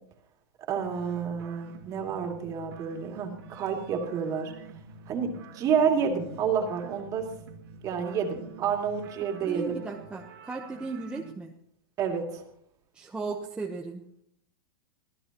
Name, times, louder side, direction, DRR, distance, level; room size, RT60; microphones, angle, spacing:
voice 1, 0.7-4.5 5.1-7.2 7.8-9.8 12.0-12.4, right 6 dB, 25° right, 2 dB, 2.7 m, -29 dB
sound 1, 0.8-11.3, right 5 dB, 80° right, 2.5 m, -48 dB
voice 2, 9.4-11.5 12.9-14.0, right 4 dB, 10° right, 0 dB, 1.0 m, -36 dB
25.0 x 16.5 x 3.0 m, 0.71 s
supercardioid pair, 155°, 13 cm